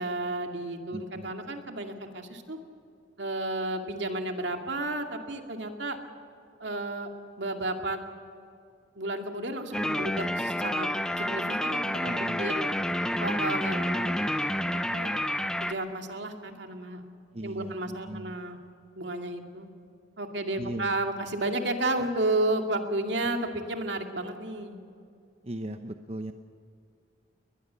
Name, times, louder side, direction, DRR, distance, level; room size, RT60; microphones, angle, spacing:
voice 1, 0.0-2.6 3.2-6.0 6.6-7.1 7.4-8.0 9.0-10.9 11.2-12.7 13.2-14.2 14.7-15.2 15.6-17.0 17.4-18.6 19.0-19.7 20.2-24.8, right 2 dB, 70° right, 4 dB, 2.3 m, -32 dB
voice 2, 0.9-1.3 12.0-12.5 17.3-18.4 20.6-20.9 25.4-26.3, right 1 dB, 35° right, 7 dB, 0.8 m, -38 dB
sound 1, 9.7-15.7, left 1 dB, 5° left, 0.7 m, -29 dB
22.0 x 21.0 x 6.9 m, 2.5 s
head